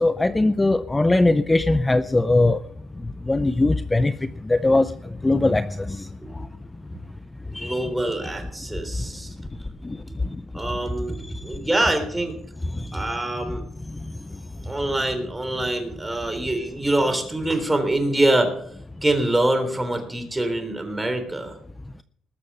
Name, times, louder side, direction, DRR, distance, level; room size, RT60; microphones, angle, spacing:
voice 1, 0.0-2.6 3.3-4.1 4.4-4.9 5.2-6.1 7.5-7.9 8.2-8.3 9.8-10.0 12.8-12.9, left 2 dB, 15° left, 0.5 m, -20 dB
voice 2, 7.4-9.4 10.5-12.3 12.9-13.6 14.6-18.5 19.0-21.5, right 1 dB, 10° right, 3.4 m, -24 dB
20.0 x 6.9 x 5.5 m
cardioid pair, 90°, 0 cm